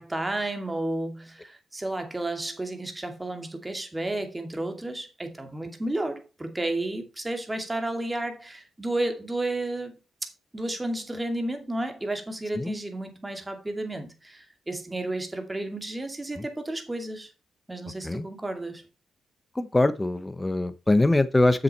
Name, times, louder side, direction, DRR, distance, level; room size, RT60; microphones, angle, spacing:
voice 1, 0.0-9.9 10.2-17.3 17.7-18.8, right 2 dB, 20° right, 2.4 m, -32 dB
voice 2, 19.6-21.6, left 2 dB, 20° left, 0.9 m, -23 dB
7.5 x 6.9 x 4.3 m
cardioid pair, 65°, 0 cm